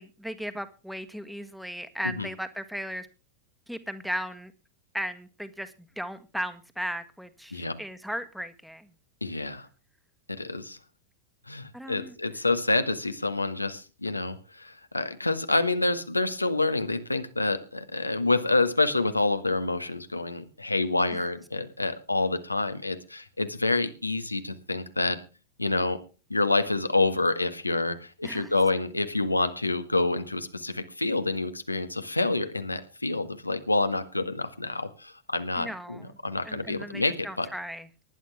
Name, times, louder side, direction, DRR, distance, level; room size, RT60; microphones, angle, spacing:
voice 1, 0.0-3.1 3.7-4.5 4.9-8.9 11.7-12.1 21.1-21.3 28.2-28.5 35.6-36.1 36.4-37.9, equal, ahead, 10 dB, 1.6 m, -36 dB
voice 2, 9.2-9.7 10.3-10.8 11.5-25.2 25.6-26.0 26.3-37.5, left 2 dB, 85° left, 10 dB, 1.6 m, -27 dB
19.0 x 11.0 x 3.4 m, 0.33 s
figure-of-eight pair, 90°, 0 cm